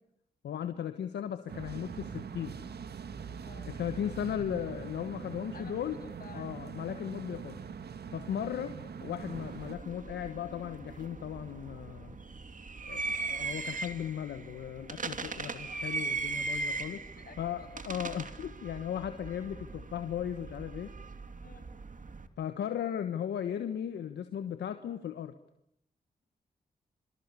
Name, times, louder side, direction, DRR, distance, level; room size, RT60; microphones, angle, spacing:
voice 1, 0.4-2.5 3.7-6.0 6.3-7.6 8.1-12.2 12.8-17.0 17.4-20.9 22.4-25.3, left 9 dB, 85° left, 9 dB, 1.3 m, -36 dB
sound 1, 1.5-9.8, right 6 dB, 70° right, 2.0 m, -43 dB
voice 2, 3.4-3.7 4.4-4.5 5.5-6.6 15.3-15.7 16.9-17.7 21.4-21.7, left 4 dB, 55° left, 6 dB, 7.0 m, -53 dB
sound 2, 9.2-22.3, right 3 dB, 50° right, 2.7 m, -39 dB
27.5 x 24.0 x 8.5 m, 0.74 s
supercardioid pair, 45°, 17 cm